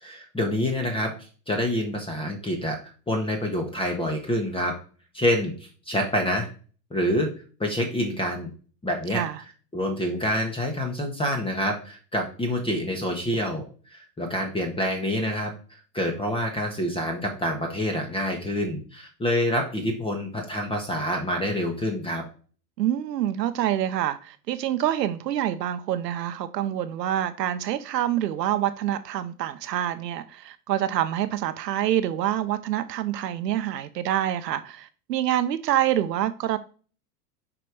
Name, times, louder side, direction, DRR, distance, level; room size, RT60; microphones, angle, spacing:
voice 1, 0.0-2.8 3.1-4.7 5.1-6.5 6.9-7.3 7.6-8.5 8.8-9.2 9.7-13.6 13.9-22.2, left 1 dB, 10° left, 1.5 m, -27 dB
voice 2, 22.8-36.6, right 11 dB, 75° right, 1.0 m, -26 dB
6.2 x 5.0 x 4.8 m
hypercardioid pair, 105°, 49 cm